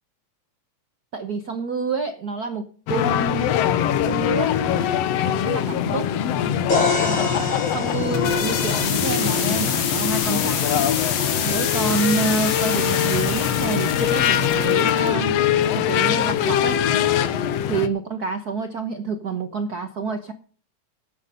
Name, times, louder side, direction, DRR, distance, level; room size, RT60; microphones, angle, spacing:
voice 1, 1.1-3.5 4.0-4.5 5.4-6.1 7.0-10.9 11.4-15.4 15.8-16.8 17.7-20.3, right 5 dB, 70° right, 7 dB, 0.9 m, -28 dB
sound 1, 2.9-17.9, left 10 dB, 70° left, 1.9 m, -22 dB
sound 2, 6.7-10.5, left 4 dB, 50° left, 4.9 m, -27 dB
sound 3, 8.0-15.1, left 7 dB, 85° left, 3.3 m, -27 dB
13.5 x 9.8 x 5.4 m, 0.43 s
omnidirectional pair, 3.3 m